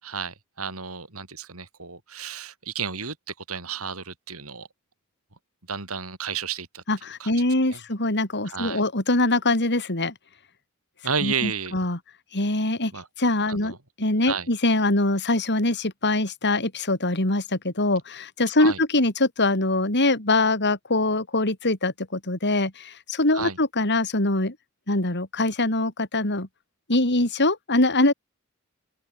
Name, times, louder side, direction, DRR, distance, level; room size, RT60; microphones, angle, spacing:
voice 1, 0.0-4.7 5.7-6.8 7.2-7.3 7.7-7.8 8.4-8.8 11.0-11.7 12.9-13.1 13.5-13.8 14.2-14.5 18.6-18.8 23.3-23.6, right 6 dB, 85° right, 6.3 m, -32 dB
voice 2, 6.9-10.1 11.2-12.0 12.3-12.9 13.2-24.5 24.9-26.5 26.9-28.1, left 2 dB, 55° left, 4.9 m, -23 dB
open air
head